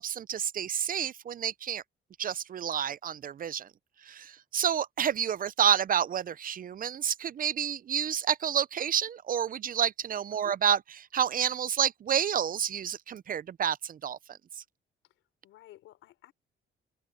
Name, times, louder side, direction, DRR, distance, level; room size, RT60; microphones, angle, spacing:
voice 1, 0.0-1.8 2.2-3.7 4.1-10.8 11.1-14.2, right 9 dB, 45° right, 0.5 m, -29 dB
voice 2, 10.3-10.6 15.0-16.3, left 14 dB, 90° left, 5.4 m, -53 dB
cardioid pair, 90°, 20 cm